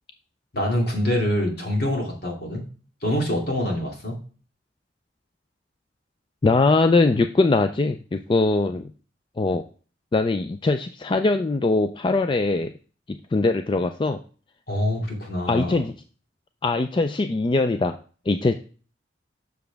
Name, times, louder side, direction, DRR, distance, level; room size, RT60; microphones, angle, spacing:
voice 1, 0.5-2.6 3.0-4.1 14.7-15.8, left 1 dB, 60° left, 0 dB, 2.5 m, -25 dB
voice 2, 6.4-8.9 9.4-9.6 10.1-12.7 13.1-14.2 15.5-15.9 16.6-18.0 18.3-18.5, left 3 dB, 25° left, 8 dB, 0.4 m, -21 dB
7.0 x 6.3 x 3.4 m, 0.39 s
head